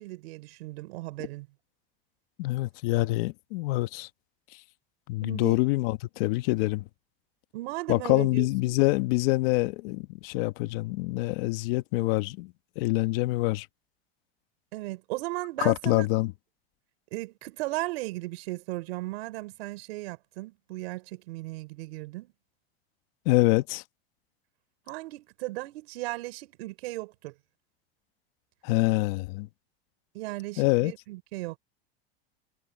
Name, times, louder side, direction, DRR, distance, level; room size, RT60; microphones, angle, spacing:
voice 1, 0.0-1.5 5.2-5.6 7.5-8.8 14.7-16.1 17.1-22.3 24.9-27.3 30.1-31.6, right 21 dB, 75° right, 4.9 m, -36 dB
voice 2, 2.4-4.1 5.1-6.8 7.9-13.7 15.6-16.3 23.2-23.8 28.6-29.5 30.6-30.9, left 21 dB, 65° left, 1.5 m, -26 dB
supercardioid pair, 120°, 31 cm